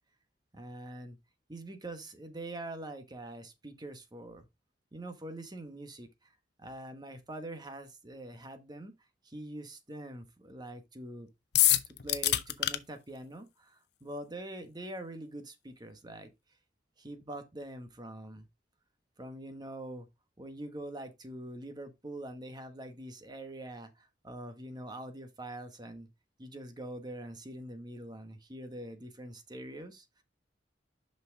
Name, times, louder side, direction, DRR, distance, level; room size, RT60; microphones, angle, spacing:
voice 1, 0.5-1.2 1.5-4.5 4.9-6.3 6.6-8.9 9.2-11.3 11.9-16.3 17.0-18.5 19.2-20.1 20.4-26.1 26.4-30.1, right 1 dB, 25° right, 1.3 m, -44 dB
sound 1, 11.5-12.8, left 13 dB, 65° left, 0.6 m, -25 dB
6.0 x 6.0 x 3.5 m
head